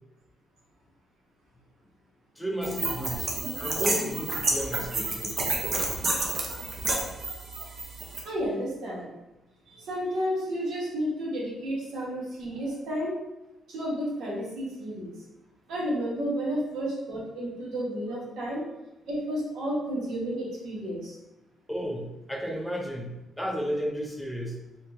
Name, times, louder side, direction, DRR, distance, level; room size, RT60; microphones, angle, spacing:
voice 1, 2.4-5.4 21.7-23.1 23.4-24.6, equal, 5° left, 0 dB, 0.6 m, -33 dB
sound 1, 2.6-8.2, right 2 dB, 45° right, 0.7 m, -30 dB
voice 2, 8.2-9.1 9.7-13.2 13.7-15.1 15.7-18.6 19.1-21.2, equal, 80° right, -5 dB, 1.1 m, -31 dB
3.2 x 2.8 x 2.6 m, 0.96 s
cardioid pair, 90°, 0 cm